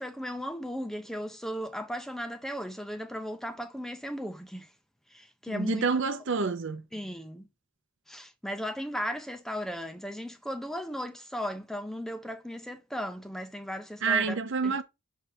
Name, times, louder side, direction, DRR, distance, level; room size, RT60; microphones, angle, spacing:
voice 1, 0.0-4.7 5.1-5.9 6.9-7.5 8.1-14.4 14.6-14.8, equal, ahead, 0.5 m, -36 dB
voice 2, 5.5-6.8 14.0-14.8, right 5 dB, 60° right, 0.6 m, -28 dB
6.3 x 3.4 x 4.3 m
head